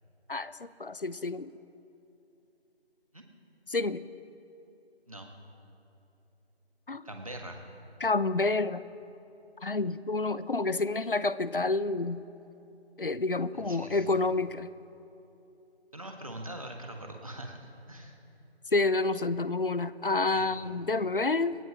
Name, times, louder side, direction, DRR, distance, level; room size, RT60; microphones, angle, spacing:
voice 1, 0.3-1.5 3.7-4.0 6.9-7.0 8.0-8.8 9.6-12.2 13.0-14.7 18.7-21.6, left 3 dB, 55° left, 16 dB, 0.6 m, -29 dB
voice 2, 7.0-7.6 13.5-14.0 15.9-18.2 20.3-20.5, right 1 dB, 30° right, 3 dB, 1.5 m, -42 dB
27.5 x 14.5 x 3.0 m, 2.9 s
figure-of-eight pair, 175°, 32 cm